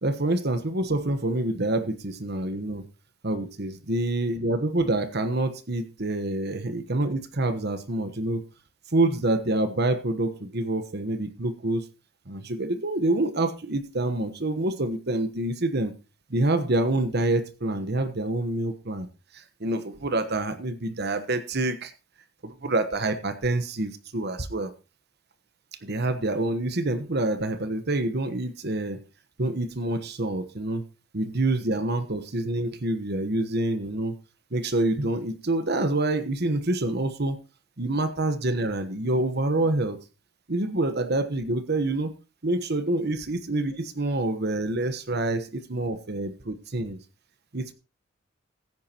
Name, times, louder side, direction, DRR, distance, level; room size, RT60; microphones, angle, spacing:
voice 1, 0.0-2.8 3.2-8.5 8.9-11.9 12.3-15.9 16.3-19.1 19.3-21.9 22.4-24.7 25.8-29.0 29.4-30.9 31.1-34.1 34.5-37.4 37.8-40.0 40.5-42.1 42.4-47.0 47.5-47.7, right 2 dB, 50° right, 11 dB, 1.2 m, -27 dB
15.5 x 9.4 x 3.0 m, 0.30 s
head